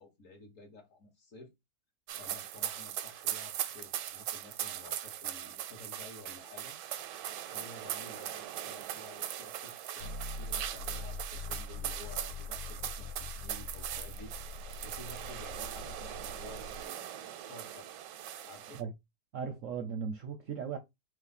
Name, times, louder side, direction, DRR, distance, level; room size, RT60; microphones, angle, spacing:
voice 1, 0.0-1.5 2.2-6.8 7.5-13.1 13.3-14.3 14.8-17.9 18.4-18.8, left 2 dB, 50° left, 1.4 m, -52 dB
sound 1, 2.1-18.8, right 11 dB, 85° right, 1.2 m, -40 dB
sound 2, 10.0-16.9, left 3 dB, 90° left, 1.2 m, -43 dB
voice 2, 19.3-20.8, right 6 dB, 65° right, 0.8 m, -37 dB
3.2 x 3.2 x 4.0 m
omnidirectional pair, 1.8 m